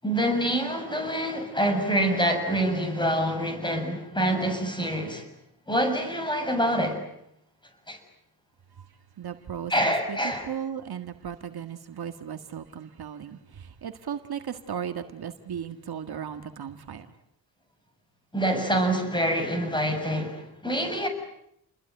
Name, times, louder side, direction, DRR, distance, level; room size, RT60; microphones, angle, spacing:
voice 1, 0.0-5.2 5.7-7.0 7.9-8.0 9.7-10.5 18.3-21.1, equal, 10° left, 7.0 m, -26 dB
voice 2, 9.2-10.2 10.5-17.1, right 8 dB, 60° right, 1.8 m, -36 dB
30.0 x 21.5 x 9.1 m
wide cardioid pair, 120°, 42 cm